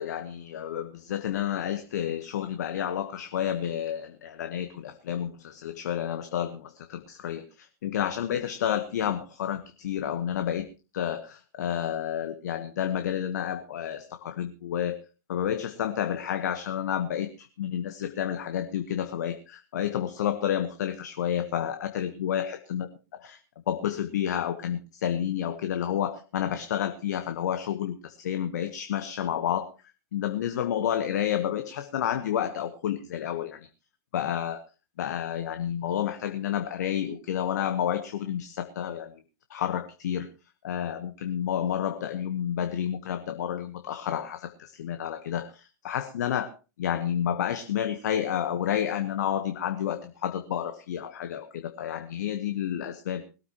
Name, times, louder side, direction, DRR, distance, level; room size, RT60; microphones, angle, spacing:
voice 1, 0.0-10.7 10.9-15.0 15.3-23.4 23.7-29.7 30.1-33.7 34.1-34.6 35.0-39.2 39.5-40.3 40.6-46.5 46.8-53.3, left 10 dB, 65° left, 9 dB, 1.2 m, -30 dB
20.0 x 13.5 x 3.0 m, 0.32 s
figure-of-eight pair, 95°, 10 cm